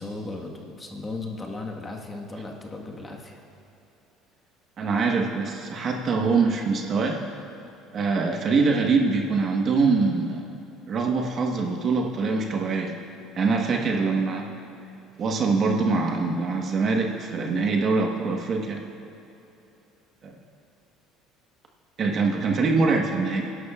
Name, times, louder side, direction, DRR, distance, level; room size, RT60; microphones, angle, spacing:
voice 1, 0.0-3.4, left 2 dB, 20° left, 0 dB, 1.4 m, -36 dB
voice 2, 4.8-7.2 7.9-10.4 10.9-12.9 13.4-14.5 15.2-18.8 20.2-20.3 22.0-23.5, right 4 dB, 45° right, 2 dB, 1.3 m, -24 dB
19.5 x 11.0 x 2.4 m, 2.9 s
supercardioid pair, 100°, 0 cm